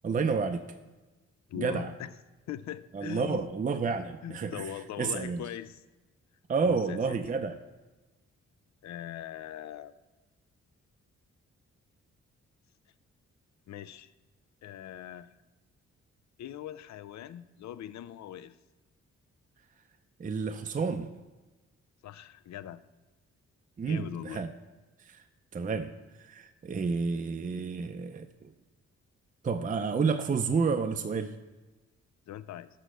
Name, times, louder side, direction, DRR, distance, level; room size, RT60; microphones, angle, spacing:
voice 1, 0.0-0.7 1.5-1.9 2.9-4.7 5.0-5.4 6.5-7.6 20.2-21.1 23.8-24.5 25.1-25.2 25.5-25.9 26.2-28.5 29.4-31.4, right 5 dB, 25° right, 8 dB, 0.5 m, -30 dB
voice 2, 1.5-2.1 2.5-3.4 4.2-5.8 6.6-7.2 8.8-9.9 13.7-14.1 14.6-15.4 16.4-18.6 22.0-22.8 23.8-24.4 32.3-32.7, left 10 dB, 70° left, 14 dB, 0.4 m, -41 dB
6.4 x 3.9 x 6.3 m, 1.2 s
cardioid pair, 65°, 30 cm